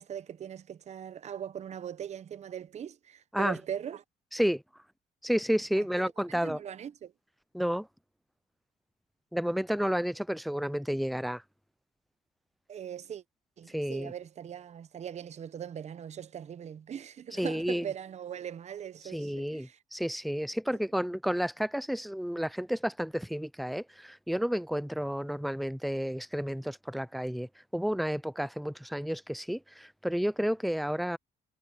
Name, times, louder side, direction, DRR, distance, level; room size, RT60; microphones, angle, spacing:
voice 1, 0.0-4.0 5.8-7.1 12.7-13.2 13.6-19.8, right 9 dB, 40° right, 0.9 m, -40 dB
voice 2, 4.3-4.6 5.2-6.6 7.5-7.9 9.3-11.4 13.7-14.1 17.4-17.9 19.1-31.2, equal, ahead, 0.3 m, -31 dB
cardioid pair, 110°, 17 cm